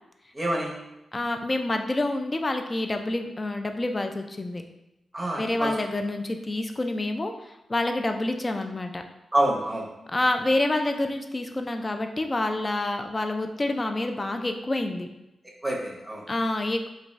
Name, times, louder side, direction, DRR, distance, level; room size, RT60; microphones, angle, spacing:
voice 1, 0.3-0.8 5.1-5.7 9.3-9.9 15.6-16.2, right 1 dB, 15° right, -3 dB, 0.8 m, -27 dB
voice 2, 1.1-4.6 5.4-7.3 7.7-9.0 10.1-15.1 16.3-16.9, left 2 dB, 30° left, 5 dB, 0.3 m, -27 dB
2.5 x 2.2 x 3.0 m, 0.94 s
cardioid pair, 65°, 0 cm